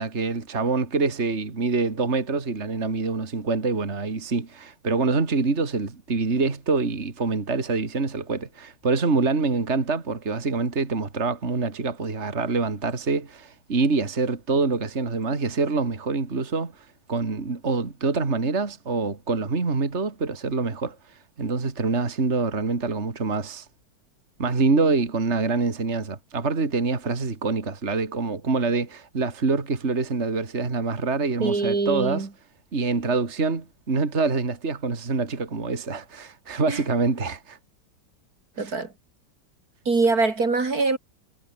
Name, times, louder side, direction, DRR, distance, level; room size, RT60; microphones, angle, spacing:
voice 1, 0.0-21.0 21.4-23.7 24.4-32.3 32.7-37.6 38.6-38.7, right 4 dB, 35° right, 2.7 m, -25 dB
voice 2, 31.4-32.3 36.7-36.8 38.6-38.9 39.9-41.0, right 3 dB, 55° right, 3.4 m, -23 dB
omnidirectional pair, 1.9 m